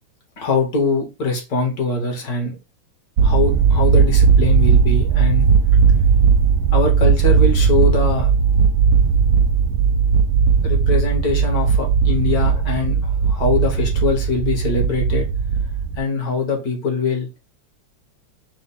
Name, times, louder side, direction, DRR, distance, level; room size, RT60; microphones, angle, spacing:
voice 1, 0.4-2.6 3.2-5.5 6.7-8.3 10.6-15.3 16.0-17.3, left 3 dB, 55° left, 2 dB, 1.6 m, -22 dB
sound 1, 3.2-16.0, right 6 dB, 80° right, 0.8 m, -16 dB
5.4 x 2.2 x 3.4 m, 0.28 s
omnidirectional pair, 2.1 m